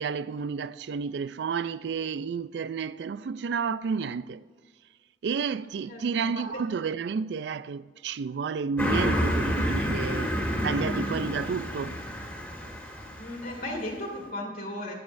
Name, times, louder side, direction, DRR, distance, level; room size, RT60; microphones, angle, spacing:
voice 1, 0.0-4.4 5.2-12.0, right 5 dB, 70° right, 0.3 m, -31 dB
voice 2, 5.9-6.6 13.2-15.0, left 1 dB, 55° left, 1.9 m, -36 dB
Car passing by, 8.8-13.7, equal, 10° left, 1.8 m, -29 dB
20.0 x 8.5 x 2.6 m
head